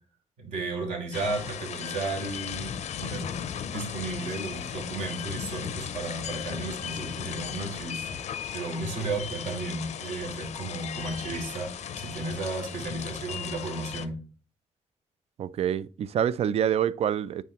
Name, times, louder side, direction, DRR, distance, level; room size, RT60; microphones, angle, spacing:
voice 1, 0.4-3.4 3.7-8.2 8.5-11.7 12.0-14.2, right 3 dB, 75° right, 2.7 m, -34 dB
sound 1, 1.1-14.1, left 8 dB, 85° left, 0.6 m, -36 dB
voice 2, 15.4-17.4, right 9 dB, 60° right, 0.4 m, -26 dB
9.3 x 4.1 x 3.0 m
wide cardioid pair, 135°, 12 cm